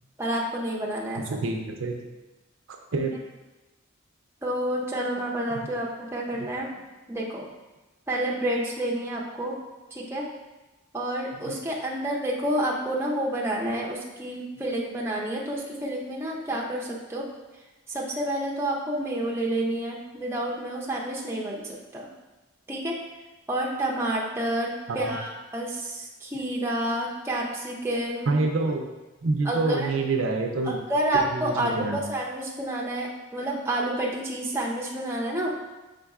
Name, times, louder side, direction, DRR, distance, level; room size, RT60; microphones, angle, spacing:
voice 1, 0.2-1.4 3.0-3.1 4.4-6.7 7.1-7.5 8.1-9.5 9.9-10.2 10.9-17.3 17.9-22.1 22.7-22.9 23.5-28.4 29.4-29.9 30.7-35.5, right 1 dB, 10° right, -3 dB, 0.5 m, -29 dB
voice 2, 1.2-2.0 2.7-3.1 11.5-11.6 24.9-25.2 28.3-28.9 29.2-30.8 31.3-32.0, right 3 dB, 70° right, 3 dB, 0.5 m, -27 dB
5.2 x 3.8 x 2.4 m, 1.1 s
head